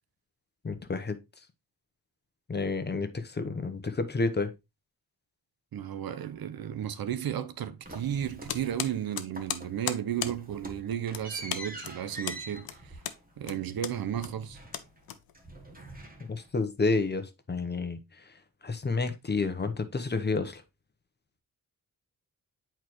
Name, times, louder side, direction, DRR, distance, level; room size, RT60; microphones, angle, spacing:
voice 1, 0.6-1.2 2.5-4.5 16.3-18.0 18.6-20.6, left 3 dB, 30° left, 0.9 m, -30 dB
voice 2, 5.7-13.0 13.4-14.6, right 10 dB, 80° right, 0.8 m, -34 dB
sound 1, 7.8-9.1 9.3-9.8 10.1-15.1 15.3-16.6, right 2 dB, 25° right, 1.4 m, -45 dB
sound 2, 8.5-15.7, left 10 dB, 85° left, 0.8 m, -38 dB
8.3 x 4.5 x 3.0 m
wide cardioid pair, 115°, 35 cm